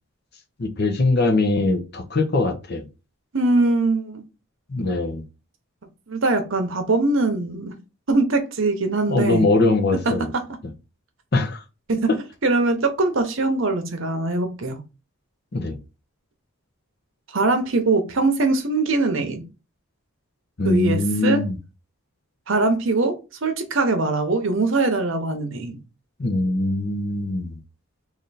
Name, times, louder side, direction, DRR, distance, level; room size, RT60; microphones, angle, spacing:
voice 1, 0.6-2.9 4.7-5.2 9.1-10.3 11.3-11.6 15.5-15.8 20.6-21.6 26.2-27.6, left 2 dB, 45° left, 0.7 m, -22 dB
voice 2, 3.3-4.2 6.1-7.8 8.1-9.4 10.3-10.4 11.9-12.1 12.4-14.8 17.3-19.4 20.6-21.4 22.5-25.8, right 3 dB, 60° right, 0.8 m, -22 dB
3.3 x 2.6 x 4.0 m
head